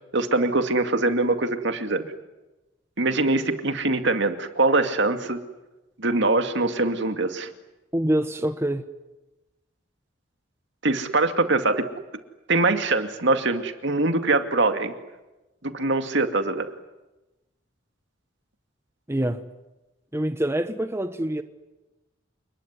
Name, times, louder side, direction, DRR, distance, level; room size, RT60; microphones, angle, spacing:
voice 1, 0.1-2.0 3.0-5.4 6.0-7.5 10.8-11.9 12.5-14.9 15.6-16.7, right 2 dB, 60° right, 2.3 m, -23 dB
voice 2, 7.9-8.9 19.1-19.4 20.1-21.4, right 1 dB, 15° right, 1.1 m, -25 dB
29.0 x 21.0 x 9.7 m
head